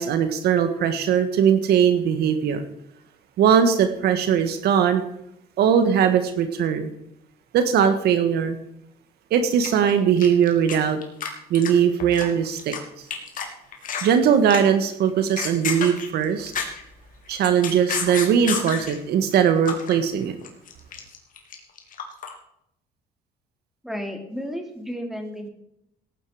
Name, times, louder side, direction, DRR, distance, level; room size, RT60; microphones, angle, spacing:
voice 1, 0.0-2.7 3.4-5.0 5.6-6.9 7.5-8.6 9.3-11.0 11.5-12.7 14.0-16.5 17.3-20.3, right 8 dB, 75° right, 8 dB, 1.5 m, -20 dB
sound 1, 9.6-10.8 11.0-11.3 11.5-12.8 13.1-13.4 13.7-14.1 14.5-14.8 15.2-16.9 17.3-19.0 19.4-19.9 20.2-22.3, left 7 dB, 55° left, 3.5 m, -30 dB
voice 2, 23.8-25.5, equal, ahead, 4 dB, 2.8 m, -32 dB
18.0 x 9.4 x 4.9 m, 0.76 s
cardioid pair, 110°, 17 cm